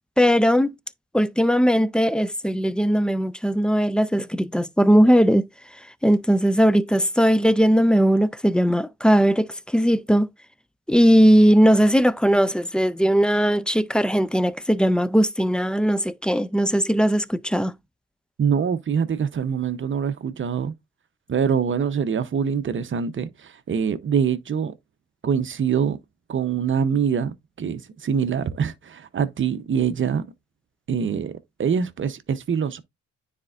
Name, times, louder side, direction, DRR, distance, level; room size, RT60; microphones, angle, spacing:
voice 1, 0.2-0.7 1.1-5.4 6.0-10.3 10.9-17.7, equal, 5° left, 0.4 m, -19 dB
voice 2, 18.4-20.7 21.3-24.7 25.2-26.0 26.3-30.2 30.9-31.3 31.6-32.8, right 7 dB, 40° right, 0.8 m, -24 dB
9.5 x 4.3 x 2.5 m
cardioid pair, 90°, 30 cm